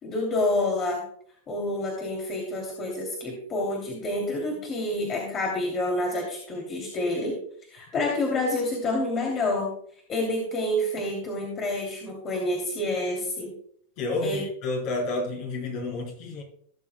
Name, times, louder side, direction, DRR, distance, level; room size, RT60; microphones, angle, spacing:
voice 1, 0.0-1.1 1.5-7.4 7.7-9.7 10.1-13.6 14.2-14.4, left 1 dB, 30° left, 0 dB, 2.7 m, -28 dB
voice 2, 14.0-16.4, left 2 dB, 50° left, -1 dB, 4.1 m, -30 dB
17.5 x 7.3 x 2.2 m, 0.63 s
hypercardioid pair, 105°, 0 cm